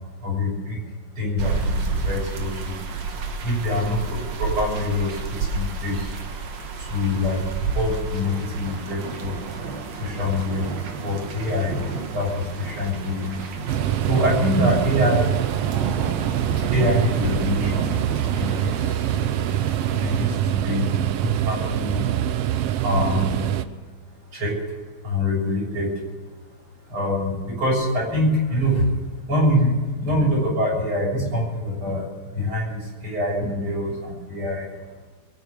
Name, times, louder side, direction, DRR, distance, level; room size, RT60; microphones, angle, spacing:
voice 1, 0.2-0.8 1.2-2.8 3.4-6.1 6.8-9.4 10.0-10.7 11.0-13.5 14.1-15.3 16.7-17.9 18.3-19.3 20.0-22.1 22.8-23.5 24.3-24.5 25.0-25.9 26.9-28.9 29.3-34.7, left 1 dB, 40° right, -3 dB, 7.4 m, -25 dB
sound 1, 1.4-20.3, right 4 dB, 60° right, 2.7 m, -31 dB
sound 2, 13.7-23.7, right 11 dB, 85° right, 1.3 m, -24 dB
22.5 x 9.6 x 6.6 m, 1.4 s
omnidirectional pair, 3.6 m